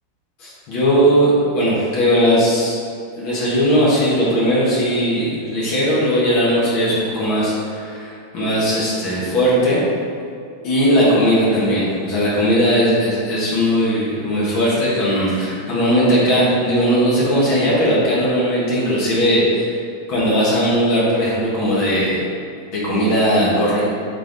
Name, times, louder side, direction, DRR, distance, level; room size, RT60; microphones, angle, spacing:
voice 1, 0.4-2.8 3.2-9.8 10.6-19.8 20.1-22.2 22.7-23.8, equal, 70° left, -8 dB, 2.3 m, -18 dB
7.5 x 5.6 x 3.9 m, 2.4 s
omnidirectional pair, 2.3 m